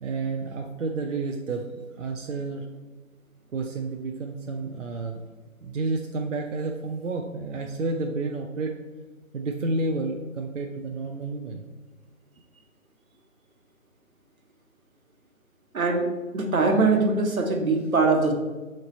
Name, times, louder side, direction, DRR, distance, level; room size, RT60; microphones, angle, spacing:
voice 1, 0.0-1.7 2.0-2.7 3.5-5.2 5.6-8.7 9.3-11.6, right 3 dB, 65° right, 2 dB, 0.5 m, -30 dB
voice 2, 15.7-16.1 16.3-18.3, right 3 dB, 85° right, 2 dB, 1.0 m, -22 dB
4.1 x 3.2 x 4.0 m, 1.3 s
hypercardioid pair, 175°, 41 cm